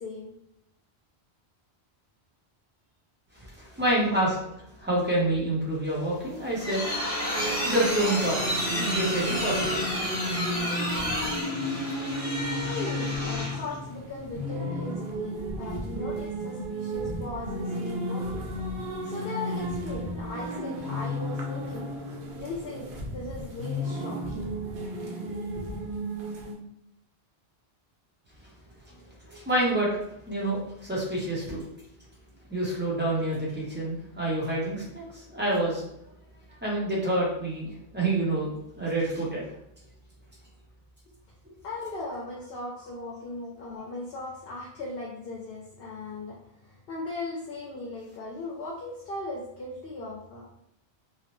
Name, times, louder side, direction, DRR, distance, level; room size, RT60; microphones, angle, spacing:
voice 1, 0.0-0.3 3.6-3.8 12.6-21.9 22.4-24.6 25.2-25.6 41.1-41.2 41.6-50.6, left 2 dB, 65° left, -3 dB, 0.8 m, -38 dB
voice 2, 3.4-4.4 4.7-6.8 7.1-8.4 8.7-10.0 10.3-10.6 28.9-29.9 30.3-31.6 32.5-35.8 36.6-39.4 43.8-43.9, right 1 dB, 10° right, -6 dB, 0.7 m, -28 dB
sound 1, 6.2-13.7, equal, 50° right, 1.2 m, -31 dB
sound 2, 7.3-26.5, equal, 70° right, 0.8 m, -33 dB
2.7 x 2.0 x 3.0 m, 0.78 s
omnidirectional pair, 1.1 m